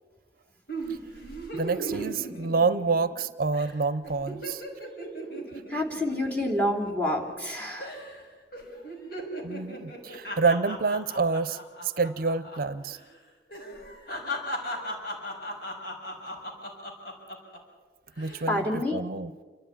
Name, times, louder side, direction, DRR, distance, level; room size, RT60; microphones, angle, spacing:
sound 1, 0.7-3.2 3.5-3.7 4.0-7.5 7.8-8.2 8.5-12.6 12.8-13.0 13.5-17.6 18.1-18.5, equal, 60° left, 5.5 m, -37 dB
voice 1, 1.5-4.6 9.4-13.0 18.2-19.3, right 4 dB, 55° right, 14 dB, 0.6 m, -28 dB
voice 2, 5.7-7.9 18.5-19.0, left 1 dB, 10° left, 2 dB, 3.1 m, -28 dB
28.5 x 13.0 x 9.9 m, 1.4 s
head